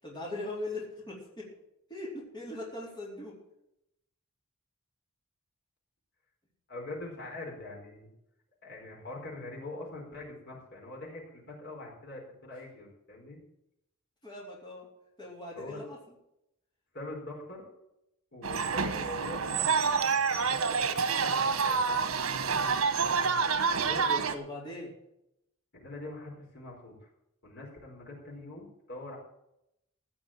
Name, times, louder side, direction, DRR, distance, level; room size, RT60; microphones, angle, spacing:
voice 1, 0.0-1.5 1.9-3.3 14.2-14.9 15.2-16.0 23.4-24.9, left 2 dB, 20° left, -5 dB, 4.1 m, -40 dB
voice 2, 6.7-8.1 8.6-13.4 15.6-15.8 16.9-17.7 18.3-19.8 20.3-20.9 21.2-21.8 23.7-24.2 25.7-26.9 27.4-29.2, left 2 dB, 55° left, -2 dB, 4.5 m, -43 dB
sound 1, 18.4-24.3, right 5 dB, 80° right, 1.3 m, -28 dB
16.0 x 6.1 x 9.0 m, 0.82 s
head